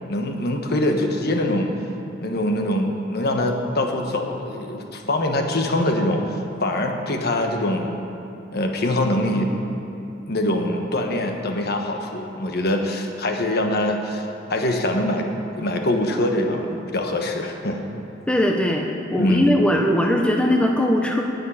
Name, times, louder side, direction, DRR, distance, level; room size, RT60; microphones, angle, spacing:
voice 1, 0.1-1.8 2.2-7.9 8.5-9.5 10.3-15.3 15.6-17.8 19.2-19.6, left 1 dB, 55° left, 3 dB, 1.2 m, -23 dB
voice 2, 18.3-18.8 19.1-21.2, left 1 dB, 5° left, 1 dB, 0.7 m, -19 dB
19.0 x 7.4 x 5.7 m, 2.8 s
head